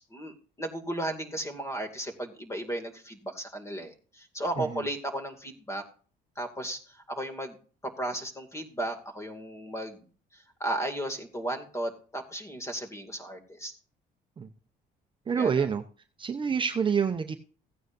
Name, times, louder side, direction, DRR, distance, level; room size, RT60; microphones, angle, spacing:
voice 1, 0.0-5.8 6.4-7.6 7.8-10.0 10.3-13.7 15.4-15.7, right 1 dB, 15° left, 6 dB, 2.3 m, -35 dB
voice 2, 15.3-15.8 16.2-17.4, right 6 dB, 30° right, 6 dB, 0.7 m, -27 dB
15.5 x 9.3 x 2.6 m, 0.39 s
cardioid pair, 110°, 17 cm